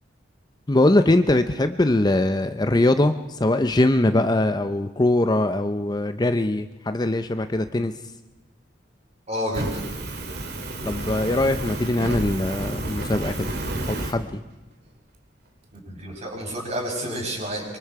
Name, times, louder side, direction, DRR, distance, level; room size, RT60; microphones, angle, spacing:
voice 1, 0.7-3.1 3.4-7.9 10.8-13.5 13.9-14.4, left 1 dB, 20° left, 9 dB, 0.6 m, -21 dB
voice 2, 9.3-9.9 15.9-17.6, equal, 35° right, -1 dB, 6.5 m, -29 dB
Fire, 9.5-14.1, right 1 dB, 60° right, 2.6 m, -30 dB
24.5 x 24.0 x 4.8 m, 1.1 s
head